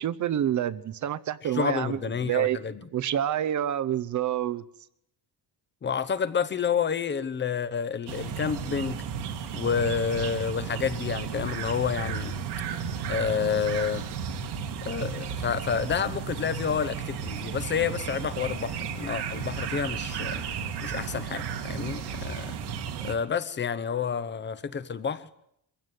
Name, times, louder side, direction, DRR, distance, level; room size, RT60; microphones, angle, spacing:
voice 1, 0.0-2.6 2.9-4.6, right 11 dB, 50° right, 0.9 m, -28 dB
voice 2, 1.4-2.8 5.8-9.0 9.5-12.4 13.1-14.0 14.8-20.4 20.8-22.5 23.0-25.3, left 6 dB, 30° left, 1.0 m, -29 dB
sound 1, 8.1-23.2, right 7 dB, 85° right, 2.6 m, -34 dB
23.5 x 16.0 x 9.4 m
cardioid pair, 170°, 39 cm